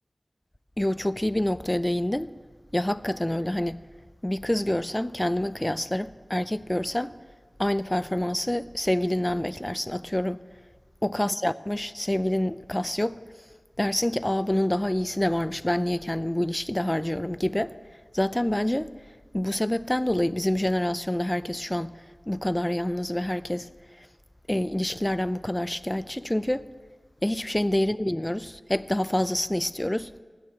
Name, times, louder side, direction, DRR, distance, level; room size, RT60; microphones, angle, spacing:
voice 1, 0.8-2.3 2.7-3.8 4.2-7.1 7.6-10.4 11.0-13.2 13.8-17.7 18.1-18.9 19.3-22.0 22.3-23.7 24.0-24.1 24.5-26.7 27.2-30.1, left 1 dB, 20° left, 0.5 m, -27 dB
16.0 x 6.5 x 9.8 m
wide cardioid pair, 45°, 0 cm